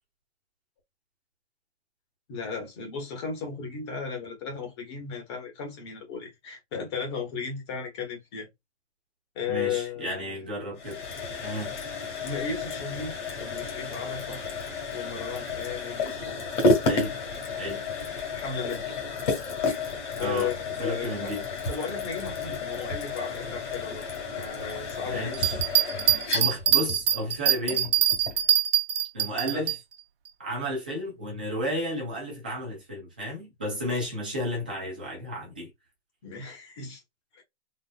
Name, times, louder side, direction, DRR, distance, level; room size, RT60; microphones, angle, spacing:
voice 1, 2.3-8.5 9.3-10.5 12.2-14.4 14.9-16.2 18.3-18.8 19.5-19.7 20.2-21.3 21.7-24.0 24.3-25.3 29.5-29.7 36.2-37.0 37.3-37.4, left 6 dB, 25° left, 1.2 m, -35 dB
voice 2, 9.5-11.0 11.4-11.7 16.9-17.1 17.5-17.8 20.2-20.5 20.8-21.5 25.0-25.6 26.3-27.9 29.1-29.7 30.4-35.7, equal, 10° right, 0.4 m, -32 dB
sound 1, 10.8-28.5, left 3 dB, 45° left, 1.5 m, -31 dB
sound 2, 25.3-29.8, right 10 dB, 60° right, 0.6 m, -23 dB
4.1 x 2.4 x 2.3 m
hypercardioid pair, 170°, 34 cm